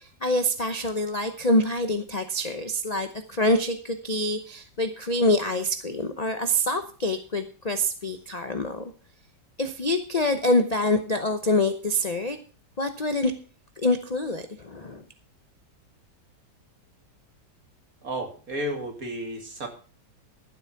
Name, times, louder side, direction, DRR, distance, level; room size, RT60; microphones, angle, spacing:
voice 1, 0.0-8.9 9.6-12.4 12.8-13.3 13.8-15.0, left 1 dB, 35° left, 8 dB, 0.6 m, -26 dB
voice 2, 18.0-19.7, right 1 dB, 50° right, 3 dB, 2.9 m, -32 dB
13.0 x 8.0 x 5.8 m, 0.38 s
omnidirectional pair, 1.9 m